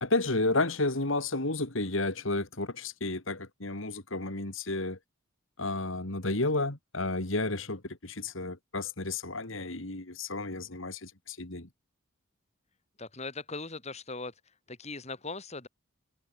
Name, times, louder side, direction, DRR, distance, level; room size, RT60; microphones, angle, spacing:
voice 1, 0.0-5.0 5.6-11.7, left 2 dB, 70° left, 2.7 m, -32 dB
voice 2, 13.0-14.3 14.7-15.7, left 3 dB, 30° left, 3.3 m, -39 dB
head